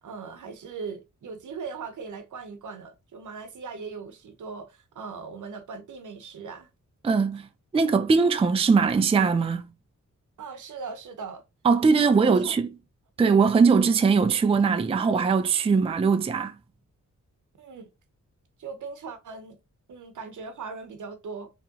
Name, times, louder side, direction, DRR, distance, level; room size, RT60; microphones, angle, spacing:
voice 1, 0.0-6.7 10.4-11.4 12.0-12.6 17.6-17.9 18.6-19.6 19.9-21.5, right 5 dB, 75° right, 0.8 m, -39 dB
voice 2, 7.0-7.5 7.7-9.6 11.6-12.7 13.2-16.6, right 5 dB, 20° right, 0.3 m, -21 dB
3.7 x 3.0 x 2.8 m
wide cardioid pair, 110°, 30 cm